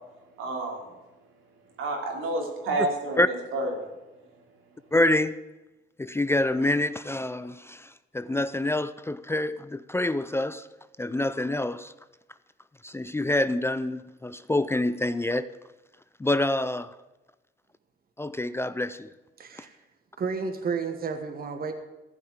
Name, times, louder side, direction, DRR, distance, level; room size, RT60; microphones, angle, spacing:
voice 1, 0.4-0.8 1.8-3.2 3.5-3.8, right 2 dB, 85° right, 3.0 m, -29 dB
voice 2, 4.9-5.3 6.0-10.7 11.0-11.9 12.8-15.5 16.2-17.0 18.2-19.1, left 1 dB, 10° left, 0.4 m, -26 dB
voice 3, 19.4-19.8 20.2-21.7, right 5 dB, 50° right, 1.3 m, -31 dB
15.0 x 5.7 x 8.9 m
cardioid pair, 90°, 20 cm